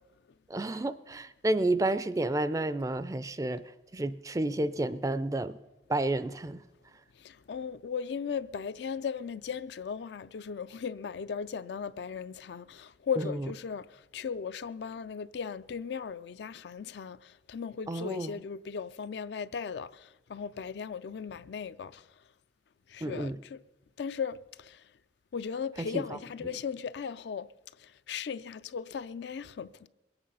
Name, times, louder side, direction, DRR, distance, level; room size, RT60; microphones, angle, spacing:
voice 1, 0.5-3.6 3.9-5.6 5.9-6.6 13.2-13.3 17.9-18.3 23.0-23.4 25.8-26.0, right 2 dB, 20° right, 0.4 m, -30 dB
voice 2, 7.2-22.0 22.9-23.6 24.0-24.8 25.3-27.5 27.8-29.9, left 6 dB, 70° left, 0.4 m, -37 dB
21.5 x 8.9 x 5.5 m
head